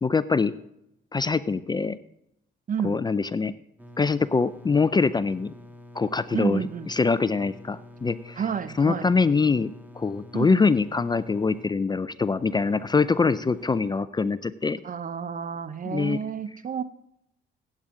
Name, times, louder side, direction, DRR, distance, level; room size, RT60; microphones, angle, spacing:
voice 1, 0.0-0.5 1.1-2.0 2.8-3.5 4.0-5.5 5.9-6.6 6.9-8.4 8.8-14.8 15.9-16.2, left 4 dB, 20° left, 15 dB, 0.4 m, -24 dB
voice 2, 2.7-3.0 6.3-6.9 8.4-9.1 10.3-10.7 14.8-16.8, right 7 dB, 45° right, 14 dB, 0.8 m, -30 dB
sound 1, 3.8-13.9, left 1 dB, 10° right, 1.6 m, -47 dB
15.5 x 8.7 x 3.8 m, 0.81 s
cardioid pair, 90°, 20 cm